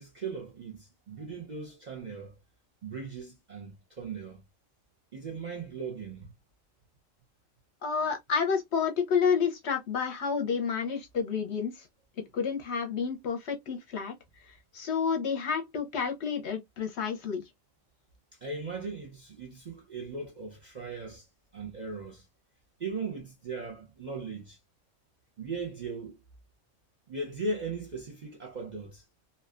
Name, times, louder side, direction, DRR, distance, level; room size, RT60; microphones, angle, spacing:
voice 1, 0.0-2.4 2.8-4.4 5.1-6.3 18.4-21.3 21.5-22.2 22.8-24.6 25.4-26.2 27.1-29.0, right 4 dB, 50° right, 0.5 m, -38 dB
voice 2, 7.8-11.9 12.3-14.1 14.5-17.4, left 6 dB, 60° left, 0.8 m, -30 dB
2.6 x 2.2 x 2.3 m
omnidirectional pair, 1.4 m